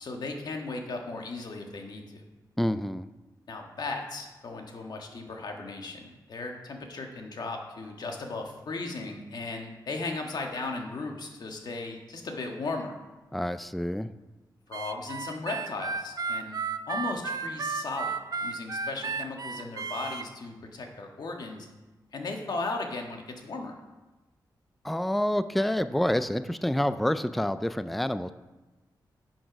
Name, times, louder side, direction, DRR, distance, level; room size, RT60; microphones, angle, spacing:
voice 1, 0.0-2.2 3.5-12.9 14.7-16.6 16.9-21.7 22.1-23.8, left 3 dB, 60° left, 2 dB, 1.5 m, -36 dB
voice 2, 2.6-3.1 13.3-14.1 24.8-28.3, left 1 dB, ahead, 12 dB, 0.3 m, -28 dB
Harmonica, 14.7-20.2, right 4 dB, 55° right, 0.5 m, -33 dB
11.0 x 6.2 x 5.2 m, 1.1 s
wide cardioid pair, 115°, 8 cm